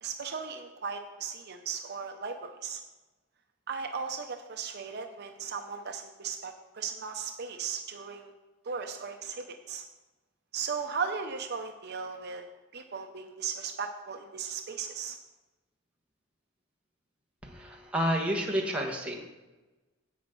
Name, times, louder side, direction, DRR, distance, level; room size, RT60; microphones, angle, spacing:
voice 1, 0.0-2.8 3.7-8.3 8.6-9.8 10.5-12.4 12.7-15.2, right 6 dB, 50° right, 5 dB, 0.7 m, -37 dB
voice 2, 17.4-19.2, equal, 5° right, -1 dB, 1.4 m, -30 dB
11.0 x 8.3 x 3.8 m, 1.1 s
head